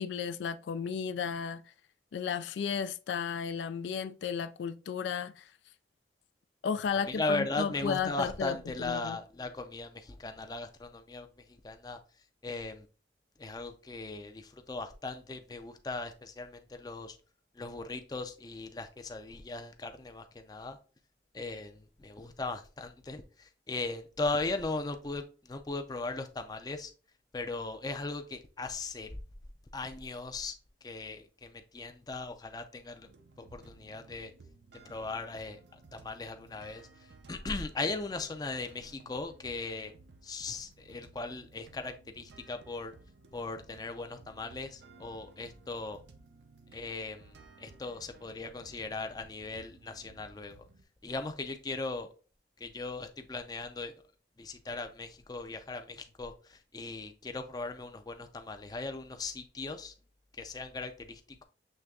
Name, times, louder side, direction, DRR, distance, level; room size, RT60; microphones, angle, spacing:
voice 1, 0.0-1.6 2.1-5.4 6.6-9.2, left 6 dB, 85° left, 0.3 m, -34 dB
voice 2, 7.0-12.0 12.4-12.9 13.4-17.2 17.6-20.8 21.3-26.9 27.3-29.1 29.7-30.5 30.8-33.1 33.4-34.3 34.8-35.6 35.9-36.9 37.3-39.9 40.2-42.9 43.3-46.0 46.7-50.6 51.0-52.1 52.6-53.9 54.4-59.9 60.4-61.4, left 3 dB, 20° left, 0.4 m, -38 dB
sound 1, 33.0-50.8, right 3 dB, 80° right, 0.6 m, -57 dB
6.5 x 3.3 x 2.3 m
head